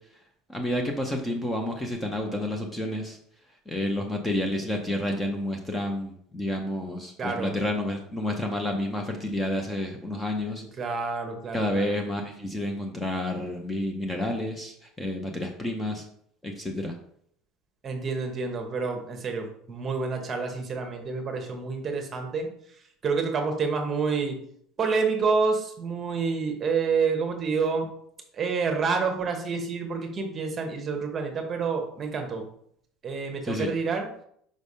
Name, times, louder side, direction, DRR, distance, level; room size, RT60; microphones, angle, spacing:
voice 1, 0.5-3.2 3.7-10.6 11.5-16.0 16.4-16.9 33.4-33.7, left 1 dB, 10° left, 3 dB, 0.7 m, -30 dB
voice 2, 7.2-7.5 10.8-11.9 17.8-22.5 23.0-24.4 24.8-27.9 28.3-32.5 33.0-34.1, right 4 dB, 25° right, 4 dB, 1.0 m, -28 dB
5.2 x 3.4 x 5.4 m, 0.67 s
cardioid pair, 150°, 0 cm